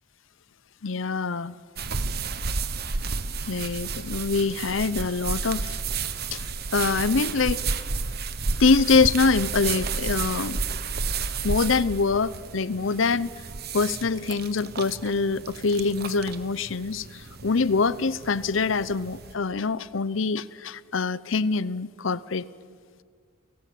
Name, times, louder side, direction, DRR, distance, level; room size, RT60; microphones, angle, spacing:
voice 1, 0.8-1.5 3.5-5.8 6.3-7.6 8.6-10.6 11.4-13.3 13.7-22.5, left 4 dB, 65° left, 18 dB, 0.7 m, -24 dB
sound 1, 1.8-19.3, right 4 dB, 50° right, 1.1 m, -32 dB
29.5 x 18.0 x 8.5 m, 2.1 s
head